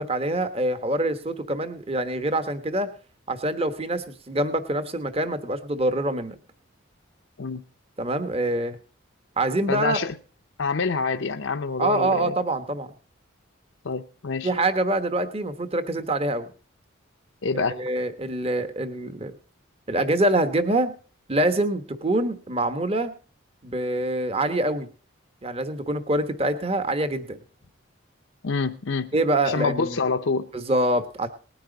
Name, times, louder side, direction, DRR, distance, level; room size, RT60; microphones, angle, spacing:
voice 1, 0.0-2.9 3.3-6.3 8.0-8.8 9.4-10.0 11.8-12.9 14.4-16.5 17.5-19.3 19.9-20.9 21.3-23.1 23.6-24.9 25.4-27.4 29.1-30.0 30.5-31.3, right 1 dB, 30° right, 10 dB, 1.2 m, -25 dB
voice 2, 9.7-10.1 10.6-12.4 13.8-14.5 17.4-17.8 28.4-29.1 29.4-30.5, left 4 dB, 65° left, 7 dB, 0.7 m, -26 dB
19.5 x 9.4 x 3.9 m, 0.38 s
head